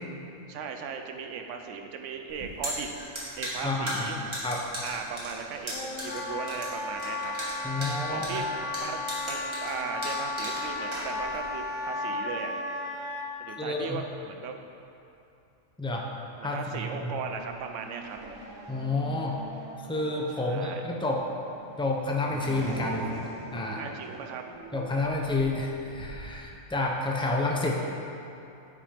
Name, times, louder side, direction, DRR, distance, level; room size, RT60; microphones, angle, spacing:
voice 1, 0.5-2.9 3.4-4.2 4.8-7.3 8.1-9.0 9.3-12.5 13.4-14.5 16.4-18.2 20.4-20.8 23.8-24.4, right 6 dB, 70° right, 4 dB, 1.0 m, -37 dB
sound 1, 2.3-11.5, equal, 20° right, 1.7 m, -36 dB
voice 2, 3.6-4.7 7.6-8.3 13.6-14.0 15.8-16.1 16.4-17.1 18.7-19.4 19.9-21.2 21.8-23.0 23.5-23.8 24.7-27.7, left 2 dB, 10° left, -1 dB, 0.3 m, -29 dB
Wind instrument woodwind instrument, 5.7-13.3, left 2 dB, 90° left, 1.2 m, -34 dB
Race car auto racing / Accelerating revving vroom, 17.3-26.3, right 2 dB, 85° right, 1.5 m, -44 dB
8.8 x 4.8 x 5.0 m, 2.7 s
omnidirectional pair, 1.4 m